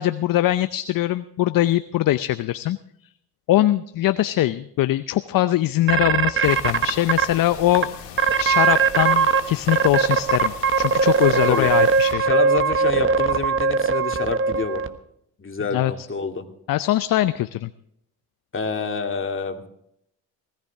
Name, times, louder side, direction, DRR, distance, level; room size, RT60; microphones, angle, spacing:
voice 1, 0.0-2.8 3.5-7.9 8.4-12.2 15.7-15.9 16.7-17.7, left 14 dB, 55° left, 13 dB, 0.7 m, -22 dB
sound 1, 5.9-7.3 7.7-7.8 8.2-9.4 9.7-14.9, right 5 dB, 30° right, 1.2 m, -19 dB
sound 2, 6.4-12.1, left 8 dB, 80° left, 2.5 m, -40 dB
voice 2, 12.2-14.8 15.4-16.4 18.5-19.6, left 4 dB, 30° left, 4 dB, 2.4 m, -27 dB
19.5 x 14.0 x 3.6 m, 0.72 s
hypercardioid pair, 60°, 41 cm